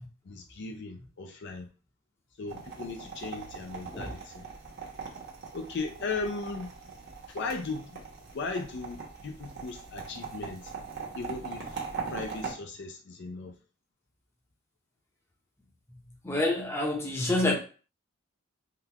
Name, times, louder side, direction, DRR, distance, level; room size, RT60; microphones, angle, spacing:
voice 1, 0.3-1.7 2.4-4.5 5.5-6.7 7.3-8.0 8.3-10.7 11.2-11.8 12.1-13.6, left 3 dB, 55° left, 0.5 m, -37 dB
sound 1, 2.5-12.5, right 5 dB, 55° right, 1.0 m, -41 dB
voice 2, 16.2-17.5, left 2 dB, 15° left, 0.7 m, -27 dB
3.7 x 2.3 x 2.9 m
head